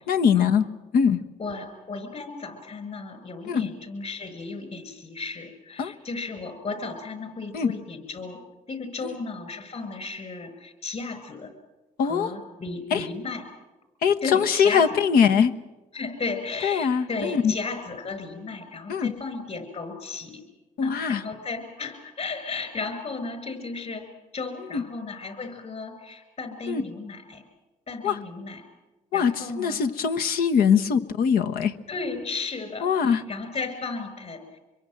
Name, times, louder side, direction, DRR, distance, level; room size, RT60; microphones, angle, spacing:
voice 1, 0.1-0.7 0.9-1.2 3.5-3.7 5.8-5.9 7.5-7.7 9.0-9.2 12.0-12.3 12.9-13.1 14.0-15.5 16.6-17.6 18.9-19.1 20.8-21.2 24.7-24.8 26.7-26.8 28.0-28.2 29.1-31.8 32.8-33.2, left 7 dB, 80° left, 9 dB, 1.2 m, -22 dB
voice 2, 1.4-8.4 8.7-11.5 12.0-13.4 14.2-14.9 15.9-20.4 20.8-24.1 24.3-27.4 27.9-28.7 29.1-29.8 31.9-34.6, left 3 dB, 45° left, 8 dB, 6.3 m, -34 dB
25.0 x 22.5 x 7.8 m, 1.2 s
cardioid pair, 80°, 15 cm